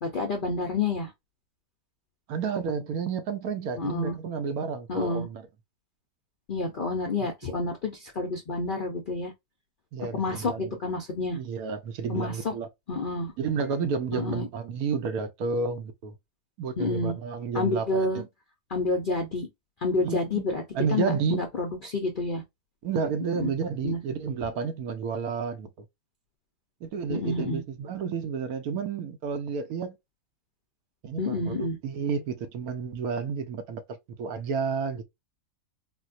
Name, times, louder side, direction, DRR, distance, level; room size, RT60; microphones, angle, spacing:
voice 1, 0.0-1.1 3.8-4.2 4.9-5.3 6.5-9.3 10.1-11.4 12.1-12.5 12.9-13.3 14.1-14.5 16.8-17.2 17.5-18.2 18.7-19.5 19.8-20.6 20.9-22.4 23.3-23.5 23.8-24.0 27.1-27.6 31.2-31.8, left 3 dB, 85° left, 0.4 m, -29 dB
voice 2, 2.3-5.4 7.4-7.6 9.9-10.8 11.4-12.7 13.4-16.1 16.6-18.2 20.0-20.5 20.7-21.4 22.8-25.7 26.8-30.0 31.0-35.0, right 5 dB, 70° right, 1.1 m, -31 dB
4.1 x 2.1 x 2.5 m
omnidirectional pair, 1.8 m